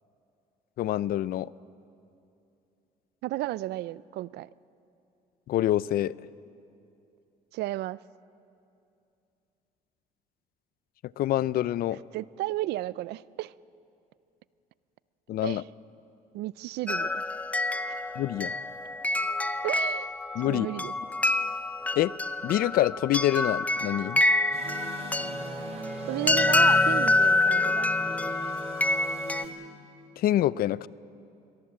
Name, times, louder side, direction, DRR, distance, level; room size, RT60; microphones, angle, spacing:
voice 1, 0.8-1.5 5.5-6.2 11.2-12.0 15.3-15.6 18.2-18.5 20.4-20.7 21.9-22.1 22.4-24.2 30.2-30.9, left 13 dB, 60° left, 20 dB, 0.5 m, -26 dB
voice 2, 3.2-4.5 7.5-8.0 12.1-13.5 15.4-15.6 16.3-17.2 17.9-18.0 19.6-20.1 20.4-20.9 26.1-27.9, right 16 dB, 75° right, 20 dB, 0.5 m, -33 dB
sound 1, 16.9-29.4, left 2 dB, 10° left, 0.7 m, -27 dB
sound 2, 24.5-29.5, right 1 dB, 40° right, 4.4 m, -39 dB
23.5 x 19.0 x 7.6 m, 2.7 s
cardioid pair, 110°, 17 cm